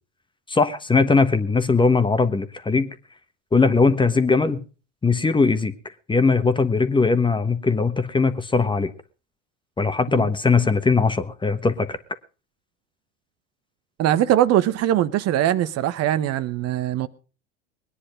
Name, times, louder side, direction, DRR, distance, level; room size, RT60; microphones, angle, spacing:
voice 1, 0.5-2.9 3.5-4.6 5.0-5.7 6.1-8.9 9.8-12.0, left 4 dB, 15° left, 1.3 m, -20 dB
voice 2, 14.0-17.1, right 12 dB, 45° right, 1.0 m, -21 dB
21.0 x 10.0 x 5.1 m
hypercardioid pair, 80°, 35 cm